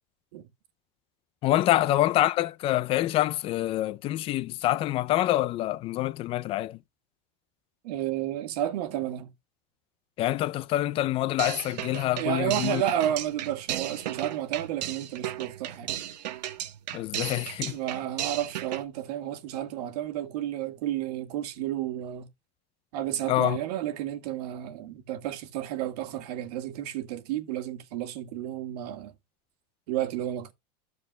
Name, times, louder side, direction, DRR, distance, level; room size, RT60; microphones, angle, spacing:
voice 1, 1.4-6.8 10.2-12.8 16.9-17.8 23.3-23.6, left 15 dB, 25° left, 0.4 m, -26 dB
voice 2, 7.8-9.3 12.2-15.9 17.7-22.3 22.9-29.1 29.9-30.5, right 12 dB, 70° right, 1.7 m, -31 dB
sound 1, 11.4-18.8, right 12 dB, 90° right, 1.3 m, -35 dB
13.0 x 6.8 x 2.2 m
supercardioid pair, 150°, 21 cm